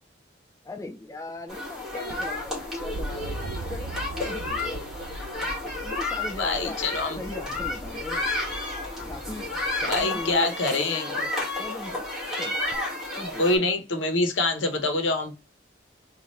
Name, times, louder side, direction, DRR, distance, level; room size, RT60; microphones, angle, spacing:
voice 1, 0.6-3.9 4.2-4.8 5.8-6.9 7.2-8.3 9.1-11.3 11.6-12.1 12.4-12.6 13.2-13.7, left 2 dB, 15° left, 0.4 m, -39 dB
sound 1, 1.5-13.6, left 2 dB, ahead, 1.7 m, -32 dB
sound 2, 2.1-8.0 9.6-10.1 12.7-12.8, right 3 dB, 65° right, 0.5 m, -39 dB
voice 2, 6.4-7.2 9.8-11.0 13.4-15.3, left 2 dB, 85° left, 0.9 m, -25 dB
4.0 x 2.4 x 3.1 m
head